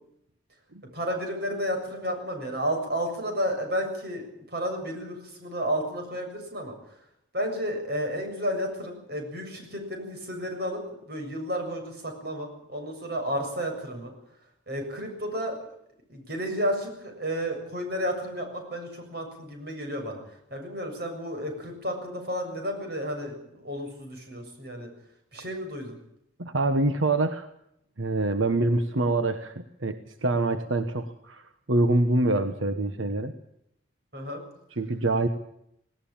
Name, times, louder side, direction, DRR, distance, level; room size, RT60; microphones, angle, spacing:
voice 1, 0.9-4.2 4.5-6.7 7.3-10.8 11.1-14.1 14.7-15.6 16.1-20.2 20.5-24.9 25.3-26.0 34.1-34.4, equal, 55° right, 4 dB, 7.3 m, -32 dB
voice 2, 26.4-27.5 28.0-33.3 34.8-35.3, right 2 dB, 85° right, 9 dB, 1.2 m, -25 dB
19.0 x 18.5 x 8.8 m, 0.77 s
head